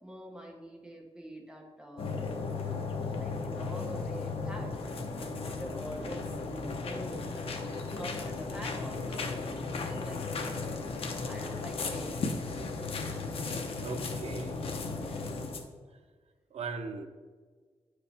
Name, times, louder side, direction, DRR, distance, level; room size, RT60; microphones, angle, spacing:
voice 1, 0.0-2.8 3.2-4.7 5.1-10.8 11.2-12.2 14.8-15.3, equal, 10° right, 0 dB, 0.9 m, -46 dB
sound 1, 2.0-15.6, left 4 dB, 65° left, 0.8 m, -35 dB
voice 2, 13.8-14.6 16.5-17.1, right 4 dB, 85° right, 7 dB, 0.6 m, -38 dB
9.4 x 4.8 x 3.4 m, 1.5 s
wide cardioid pair, 180°, 11 cm